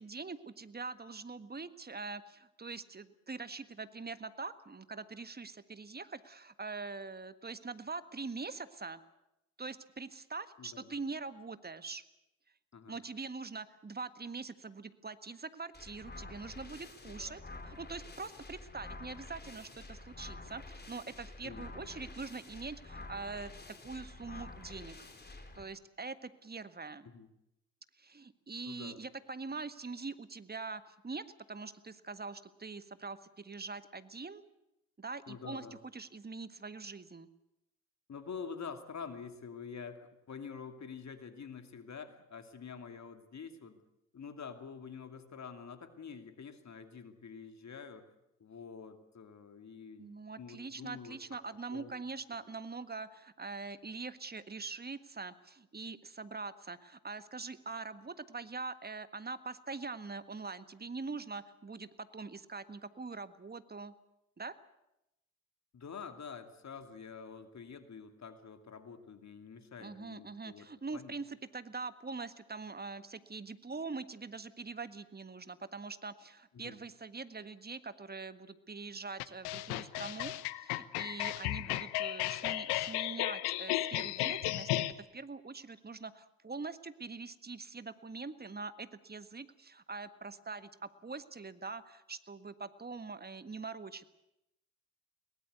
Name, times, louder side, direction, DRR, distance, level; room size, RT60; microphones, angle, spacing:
voice 1, 0.0-9.0 9.6-12.0 12.9-23.5 23.8-25.1 25.5-27.1 28.0-34.4 35.0-35.6 35.9-37.3 50.0-63.9 64.4-64.5 69.8-84.8 85.1-94.1, right 4 dB, 25° right, 13 dB, 1.6 m, -43 dB
voice 2, 10.6-11.0 12.7-13.1 17.0-17.4 21.4-22.0 27.0-27.3 28.6-29.1 35.3-35.8 38.1-43.8 44.1-48.1 48.4-51.4 51.7-51.9 65.7-71.2 76.5-76.8 81.5-81.8, left 6 dB, 45° left, 8 dB, 2.6 m, -47 dB
sound 1, 15.7-25.6, left 2 dB, 25° left, 4.1 m, -49 dB
sound 2, 79.2-84.9, left 16 dB, 75° left, 1.1 m, -34 dB
23.0 x 19.0 x 8.2 m, 0.86 s
hypercardioid pair, 50°, 39 cm